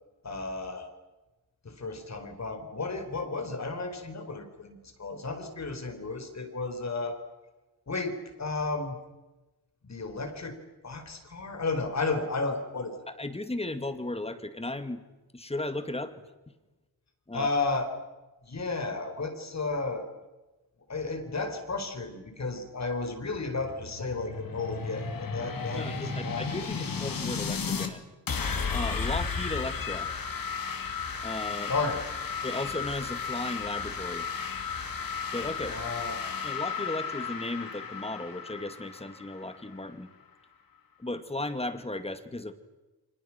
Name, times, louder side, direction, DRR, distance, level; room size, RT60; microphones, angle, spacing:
voice 1, 0.2-0.9 1.6-7.2 7.9-9.0 9.8-10.6 10.8-13.1 17.3-17.9 18.5-20.1 20.9-26.5 31.7-32.0 35.6-36.2, left 3 dB, 45° left, 7 dB, 4.2 m, -33 dB
voice 2, 13.1-15.0 15.3-16.1 17.3-17.5 25.7-28.0 28.7-30.1 31.2-31.7 32.4-34.3 35.3-35.8 36.4-40.1 41.0-42.5, left 2 dB, 15° left, 10 dB, 2.1 m, -35 dB
sound 1, 23.3-27.9 28.3-39.8, left 5 dB, 60° left, 2.8 m, -34 dB
29.5 x 25.5 x 6.0 m, 1.1 s
wide cardioid pair, 120°, 39 cm